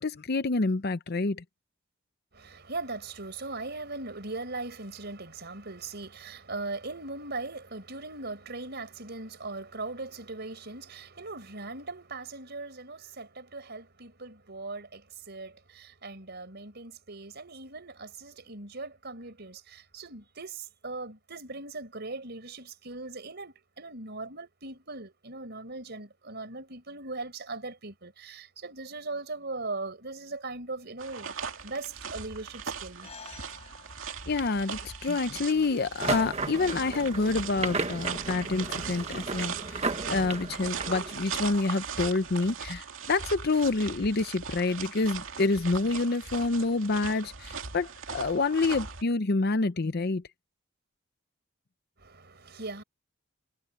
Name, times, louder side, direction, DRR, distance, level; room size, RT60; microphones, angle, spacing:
voice 1, 0.0-1.4 34.3-50.2, left 3 dB, 55° left, 0.7 m, -28 dB
voice 2, 2.3-33.1 52.0-52.8, right 3 dB, 55° right, 4.9 m, -39 dB
sound 1, 31.0-49.0, right 6 dB, 80° right, 2.4 m, -39 dB
sound 2, 33.0-37.7, left 5 dB, 35° left, 7.3 m, -53 dB
sound 3, 36.0-41.4, right 3 dB, 35° right, 1.5 m, -34 dB
head